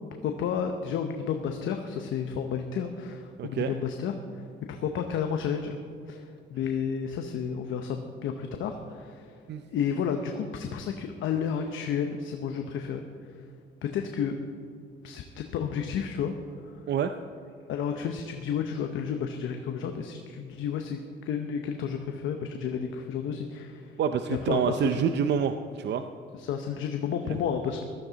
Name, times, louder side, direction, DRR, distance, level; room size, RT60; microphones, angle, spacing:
voice 1, 0.2-5.8 6.1-9.4 9.7-13.1 13.8-14.4 15.0-16.3 16.6-16.8 17.7-24.0 24.3-25.0 26.3-27.8, left 7 dB, 80° left, 5 dB, 0.9 m, -31 dB
voice 2, 3.4-3.7 9.5-9.6 16.9-17.1 24.0-26.0, right 7 dB, 60° right, 8 dB, 0.6 m, -27 dB
15.5 x 13.0 x 4.0 m, 2.3 s
cardioid pair, 90°, 20 cm